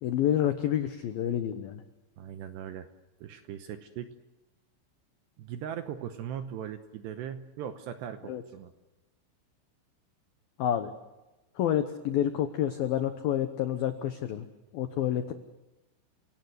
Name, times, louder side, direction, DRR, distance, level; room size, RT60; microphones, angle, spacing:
voice 1, 0.0-1.8 8.2-8.4 10.6-10.9 11.6-14.5 14.7-15.3, left 11 dB, 85° left, 9 dB, 2.0 m, -28 dB
voice 2, 2.2-2.9 3.2-4.1 5.4-8.7, right 9 dB, 75° right, 8 dB, 2.6 m, -39 dB
29.5 x 17.5 x 8.0 m, 1.0 s
omnidirectional pair, 5.9 m